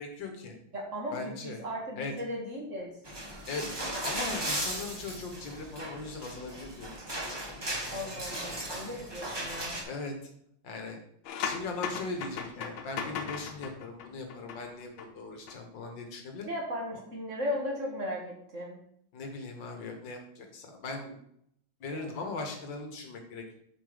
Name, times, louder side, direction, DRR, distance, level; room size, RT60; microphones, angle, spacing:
voice 1, 0.0-0.6 1.1-1.6 2.0-2.1 3.5-3.6 4.0-6.9 7.2-8.7 9.8-10.1 10.6-11.0 11.4-16.5 19.1-21.2 21.8-23.6, left 3 dB, 70° left, 4 dB, 1.9 m, -39 dB
voice 2, 0.7-2.9 7.9-9.8 16.4-18.8 21.9-22.1, left 1 dB, 40° right, -1 dB, 1.7 m, -36 dB
sound 1, 3.1-9.8, right 1 dB, 15° right, 1.0 m, -37 dB
sound 2, 11.2-15.1 15.3-15.6, left 6 dB, 85° left, 1.6 m, -38 dB
7.4 x 4.9 x 5.1 m, 0.70 s
omnidirectional pair, 2.2 m